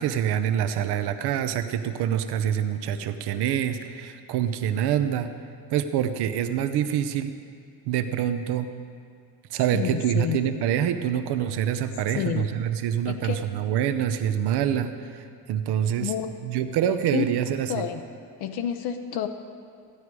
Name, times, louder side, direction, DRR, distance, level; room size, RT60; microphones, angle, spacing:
voice 1, 0.0-5.3 5.7-7.3 7.9-8.7 9.5-16.1 16.4-17.9, right 9 dB, 90° right, 9 dB, 0.7 m, -26 dB
voice 2, 9.7-10.4 12.1-12.5 13.1-13.4 16.0-16.3 17.1-17.2 17.7-18.0 18.4-19.3, left 10 dB, 90° left, 6 dB, 0.7 m, -29 dB
15.0 x 9.6 x 4.7 m, 2.3 s
cardioid pair, 125°, 38 cm